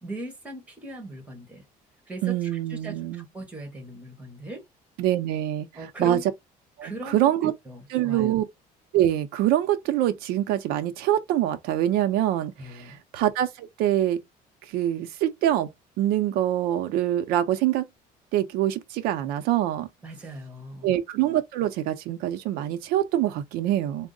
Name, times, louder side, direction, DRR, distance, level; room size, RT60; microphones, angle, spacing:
voice 1, 0.0-1.6 2.1-4.6 5.8-6.2 6.8-7.3 7.6-8.3 12.6-13.0 20.0-20.9, right 1 dB, 10° right, 1.2 m, -39 dB
voice 2, 2.2-3.3 5.0-5.7 6.0-6.2 6.8-7.5 7.9-8.4 8.9-14.2 14.7-15.7 16.0-17.8 18.3-19.9 20.8-24.1, right 12 dB, 85° right, 0.6 m, -25 dB
3.6 x 2.0 x 3.8 m
cardioid pair, 160°, 15 cm